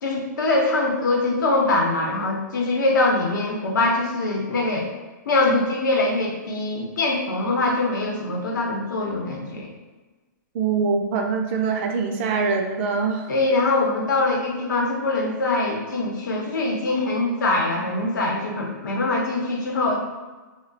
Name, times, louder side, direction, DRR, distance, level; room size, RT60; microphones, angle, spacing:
voice 1, 0.0-4.9 5.3-9.7 13.3-20.0, left 2 dB, 75° left, -1 dB, 0.8 m, -23 dB
voice 2, 10.5-13.3, right 5 dB, 40° right, 3 dB, 0.3 m, -23 dB
2.3 x 2.1 x 3.8 m, 1.3 s
hypercardioid pair, 150°, 10 cm